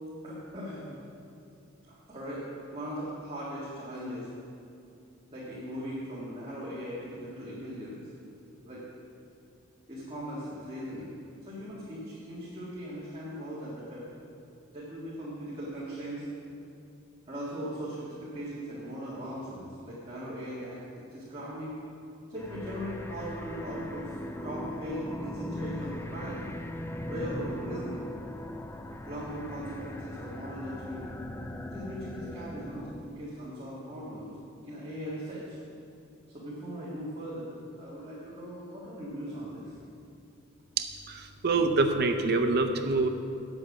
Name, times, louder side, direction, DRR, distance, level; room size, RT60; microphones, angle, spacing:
voice 1, 0.2-1.0 1.9-2.4 2.7-4.3 5.3-8.0 8.6-8.8 9.9-11.1 11.4-14.0 14.7-16.3 17.3-21.8 22.3-26.5 27.1-28.0 29.1-31.1 31.7-34.3 34.6-35.6 36.3-39.7, equal, 25° right, -9 dB, 1.9 m, -39 dB
sound 1, 22.4-33.1, left 1 dB, 10° left, 0.4 m, -39 dB
voice 2, 40.8-43.1, right 3 dB, 50° right, 6 dB, 0.7 m, -26 dB
8.7 x 7.8 x 6.1 m, 2.6 s
head